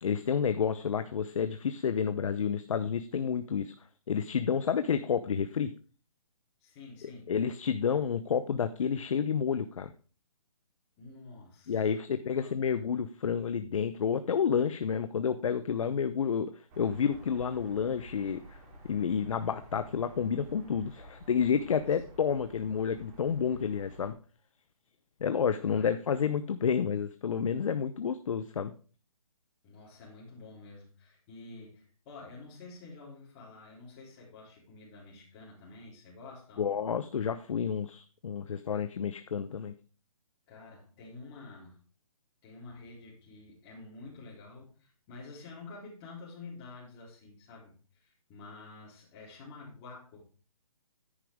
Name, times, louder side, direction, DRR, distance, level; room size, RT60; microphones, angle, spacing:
voice 1, 0.0-3.7 4.1-5.7 7.3-9.9 11.7-16.5 16.8-18.6 18.9-24.1 25.2-28.7 36.6-39.7, left 7 dB, 60° left, 11 dB, 0.8 m, -30 dB
voice 2, 6.6-7.3 11.0-11.8 12.3-12.7 25.7-26.0 29.6-36.8 40.5-41.8 42.4-50.2, left 3 dB, 25° left, -5 dB, 3.8 m, -49 dB
sound 1, 16.7-24.1, right 1 dB, 25° right, 3.8 m, -51 dB
10.0 x 10.0 x 3.6 m, 0.38 s
hypercardioid pair, 155°, 19 cm